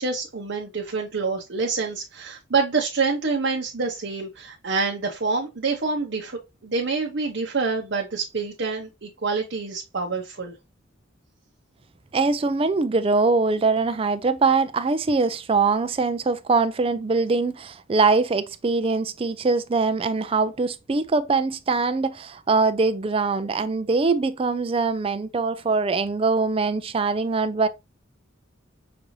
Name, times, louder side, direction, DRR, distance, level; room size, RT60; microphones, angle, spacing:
voice 1, 0.0-10.6, right 4 dB, 55° right, 0.7 m, -27 dB
voice 2, 12.1-27.7, right 4 dB, 25° right, 0.3 m, -22 dB
5.9 x 2.6 x 3.1 m
head